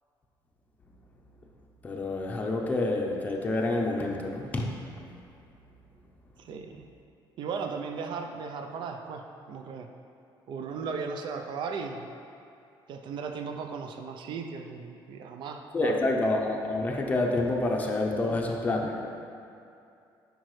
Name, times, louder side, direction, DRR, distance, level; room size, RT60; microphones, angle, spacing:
voice 1, 1.8-4.7 15.7-19.1, left 2 dB, 20° left, -1 dB, 0.7 m, -28 dB
voice 2, 6.4-6.8 7.4-9.9 10.5-12.1 12.9-16.0 18.2-18.4, right 5 dB, 60° right, 5 dB, 0.5 m, -36 dB
8.6 x 5.2 x 3.2 m, 2.6 s
cardioid pair, 145°, 9 cm